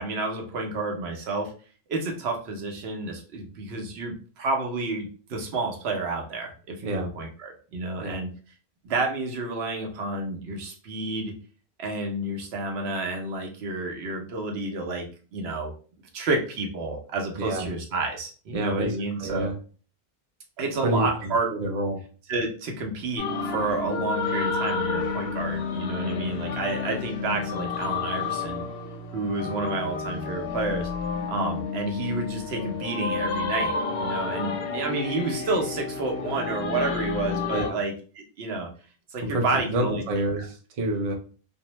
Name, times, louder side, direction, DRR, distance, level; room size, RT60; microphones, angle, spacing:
voice 1, 0.0-1.5 1.9-8.3 8.8-11.3 11.8-15.1 15.3-15.7 16.1-19.5 20.6-21.4 22.3-28.6 29.1-30.9 31.3-38.7 39.1-40.1 40.4-40.5, right 3 dB, 90° right, 2 dB, 1.0 m, -30 dB
voice 2, 18.5-19.6 20.8-22.0 37.5-37.8 39.2-41.1, right 1 dB, 45° right, 3 dB, 0.5 m, -28 dB
sound 1, 23.2-37.7, left 4 dB, 90° left, 0.8 m, -30 dB
2.6 x 2.1 x 2.9 m, 0.38 s
omnidirectional pair, 1.0 m